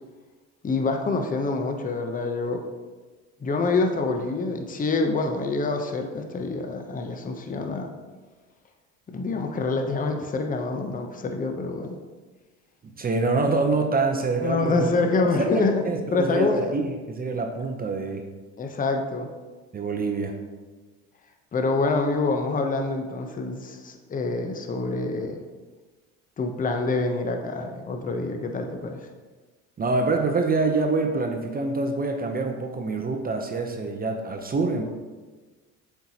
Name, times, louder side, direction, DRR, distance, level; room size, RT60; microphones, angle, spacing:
voice 1, 0.6-2.6 3.4-7.9 9.1-12.0 14.4-15.8 16.1-16.7 18.6-19.3 21.5-25.4 26.4-29.0, left 3 dB, 20° left, 5 dB, 0.8 m, -26 dB
voice 2, 13.0-14.9 15.4-18.3 19.7-20.3 29.8-34.8, right 3 dB, 25° right, 3 dB, 0.7 m, -26 dB
7.5 x 4.6 x 2.9 m, 1.3 s
supercardioid pair, 80°, 36 cm